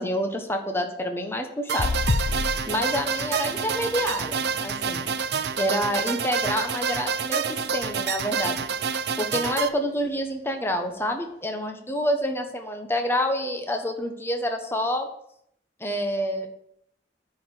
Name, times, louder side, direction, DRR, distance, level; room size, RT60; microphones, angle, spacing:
voice 1, 0.0-1.9 2.7-5.1 5.6-8.7 9.2-15.1 15.8-16.5, equal, 15° left, 4 dB, 1.2 m, -28 dB
sound 1, 1.7-9.7, right 6 dB, 65° right, 0.6 m, -28 dB
sound 2, 1.8-6.5 7.0-7.3 7.6-7.7, left 3 dB, 45° left, 0.5 m, -32 dB
10.5 x 5.0 x 7.7 m, 0.71 s
head